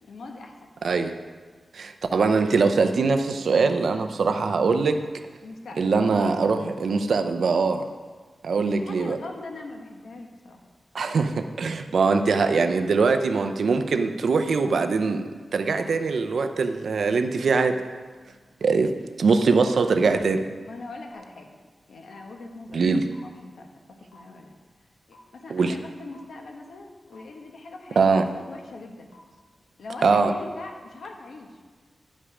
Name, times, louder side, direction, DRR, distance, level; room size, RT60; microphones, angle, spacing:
voice 1, 0.0-0.7 5.4-5.9 8.7-10.6 20.6-21.6 21.9-22.9 23.2-24.5 25.1-28.1 28.3-29.1 29.8-31.6, left 3 dB, 80° left, 2 dB, 1.1 m, -41 dB
voice 2, 0.8-1.1 1.7-5.0 5.8-7.9 8.4-9.2 10.9-15.2 15.5-17.8 18.6-18.9 19.2-20.5 22.7-23.0 25.5-25.7 28.0-28.2 30.0-30.3, right 4 dB, 65° right, 7 dB, 0.6 m, -22 dB
sound 1, 21.1-21.2 22.1-22.2 23.1-23.2 24.1-24.2 25.1-25.2 26.1-26.2 27.1-27.2 28.1-28.2 29.1-29.2 30.1-30.2, left 5 dB, 55° left, 1.8 m, -55 dB
11.0 x 5.4 x 4.9 m, 1.5 s
wide cardioid pair, 175°, 0 cm